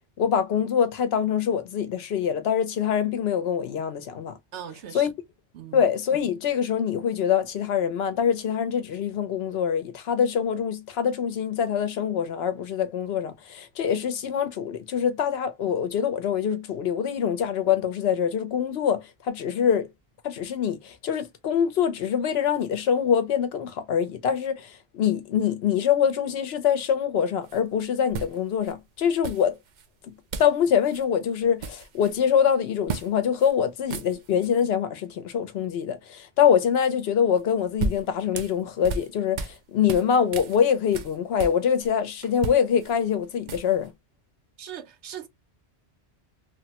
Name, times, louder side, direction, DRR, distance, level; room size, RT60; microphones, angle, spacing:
voice 1, 0.2-4.4 4.9-5.1 5.7-19.9 20.2-29.6 30.0-30.1 30.4-43.9, left 8 dB, 70° left, 0.8 m, -24 dB
voice 2, 4.5-5.1 5.5-5.9 44.6-45.3, right 9 dB, 80° right, 1.0 m, -39 dB
sound 1, 27.4-27.6 28.1-28.7 29.2-29.9 30.3-30.6 30.9-31.0 31.4-32.2 32.9-33.1 33.4-33.5 33.8-34.5 37.4-39.6 39.9-41.9 42.2-43.9, right 4 dB, 55° right, 0.5 m, -34 dB
3.1 x 2.1 x 2.8 m
omnidirectional pair, 1.2 m